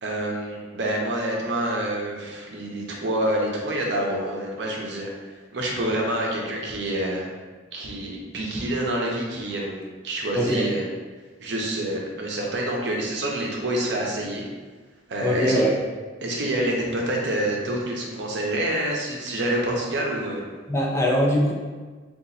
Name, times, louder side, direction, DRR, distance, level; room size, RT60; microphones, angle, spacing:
voice 1, 0.0-5.1 5.5-7.3 7.7-10.8 11.4-14.5 15.1-15.6 16.2-20.4, right 1 dB, 65° right, -1 dB, 0.7 m, -27 dB
voice 2, 10.4-10.7 15.2-15.8 20.7-21.5, equal, 15° left, -2 dB, 0.4 m, -21 dB
2.8 x 2.4 x 3.9 m, 1.4 s
head